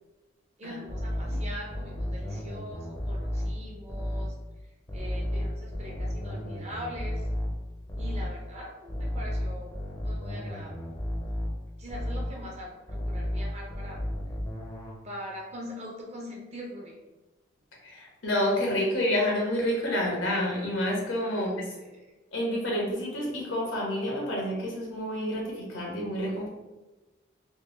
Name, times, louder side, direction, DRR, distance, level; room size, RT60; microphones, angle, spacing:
voice 1, 0.6-4.3 4.9-7.3 7.9-10.8 11.8-14.0 15.0-17.0 21.3-22.1, equal, 35° right, -1 dB, 0.7 m, -42 dB
sound 1, 0.9-4.4 4.9-8.4 8.9-12.4 12.9-14.9, equal, 15° left, 0.6 m, -33 dB
voice 2, 17.8-21.6 22.3-26.5, left 1 dB, 85° left, -3 dB, 1.2 m, -29 dB
3.4 x 2.6 x 3.2 m, 1.1 s
head